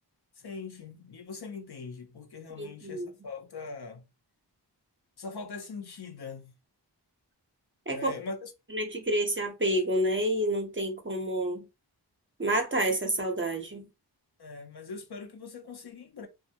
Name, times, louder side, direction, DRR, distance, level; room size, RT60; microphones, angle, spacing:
voice 1, 0.4-4.0 5.2-6.5 7.9-8.5 14.4-16.3, left 4 dB, 65° left, 0.6 m, -41 dB
voice 2, 2.6-3.1 7.9-8.1 8.7-11.7 12.4-13.9, right 1 dB, 30° right, 0.6 m, -29 dB
2.3 x 2.0 x 2.8 m
wide cardioid pair, 60°, 43 cm